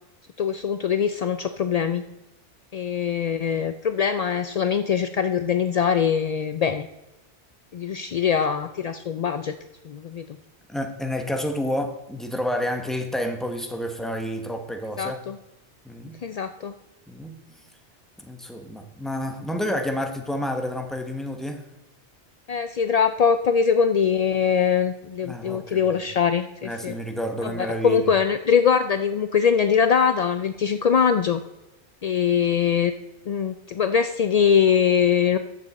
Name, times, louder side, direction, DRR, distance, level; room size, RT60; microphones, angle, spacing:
voice 1, 0.4-2.0 2.7-6.9 7.7-9.6 9.9-10.3 15.0-15.4 16.2-16.7 22.5-26.9 27.4-31.4 32.0-32.9 33.3-35.4, left 7 dB, 70° left, 10 dB, 0.3 m, -22 dB
voice 2, 10.7-15.2 15.8-16.2 17.1-17.4 18.2-21.7 25.2-26.0 26.6-28.1, equal, ahead, 5 dB, 0.9 m, -29 dB
13.0 x 7.5 x 4.1 m, 0.96 s
omnidirectional pair, 1.2 m